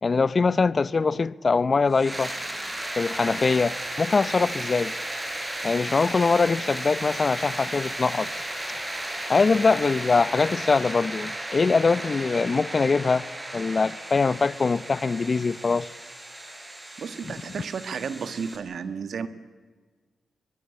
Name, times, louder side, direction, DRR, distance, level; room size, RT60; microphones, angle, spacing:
voice 1, 0.0-2.3 3.0-4.9 5.6-8.3 9.3-13.2 13.5-15.9, left 4 dB, 45° left, 0.7 m, -23 dB
sound 1, 1.9-18.6, right 1 dB, 20° right, 5.4 m, -34 dB
voice 2, 17.0-19.3, right 6 dB, 70° right, 1.6 m, -32 dB
23.5 x 21.0 x 8.5 m
cardioid pair, 60°, 0 cm